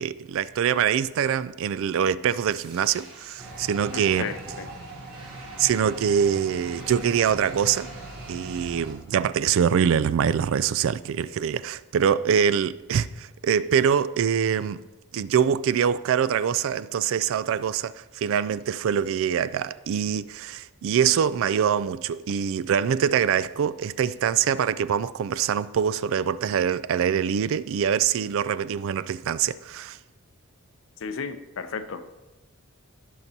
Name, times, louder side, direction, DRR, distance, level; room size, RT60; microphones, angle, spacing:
voice 1, 0.0-4.3 5.6-7.9 8.3-14.8 15.1-30.0, right 8 dB, 60° right, 0.3 m, -24 dB
sound 1, 2.5-8.5, right 2 dB, 20° right, 1.7 m, -51 dB
sound 2, 3.4-8.9, right 2 dB, 90° right, 3.1 m, -40 dB
voice 2, 3.9-4.7 31.0-32.1, left 5 dB, 60° left, 0.6 m, -34 dB
16.0 x 5.9 x 2.8 m
head